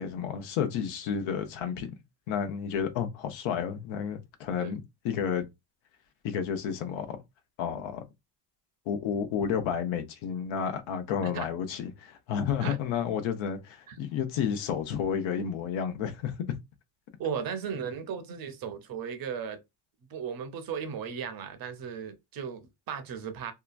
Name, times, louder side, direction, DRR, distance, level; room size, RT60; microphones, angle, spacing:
voice 1, 0.0-1.9 2.3-5.5 6.2-7.2 7.6-8.0 8.9-16.3, left 7 dB, 65° left, 0.8 m, -31 dB
voice 2, 17.2-19.6 20.1-23.5, right 7 dB, 45° right, 0.7 m, -36 dB
2.9 x 2.2 x 2.4 m
cardioid pair, 115°, 50 cm